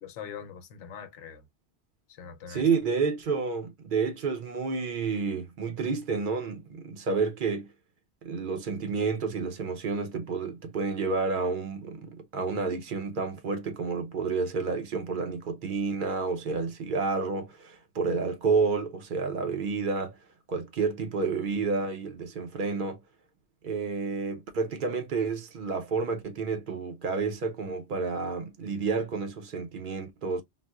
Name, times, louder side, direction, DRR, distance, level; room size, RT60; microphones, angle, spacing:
voice 1, 0.0-1.4 2.1-2.7, left 7 dB, 85° left, 1.0 m, -42 dB
voice 2, 2.5-7.7 8.2-20.2 20.5-23.0 23.6-30.4, right 4 dB, 55° right, 0.7 m, -30 dB
4.0 x 2.0 x 2.2 m
omnidirectional pair, 1.2 m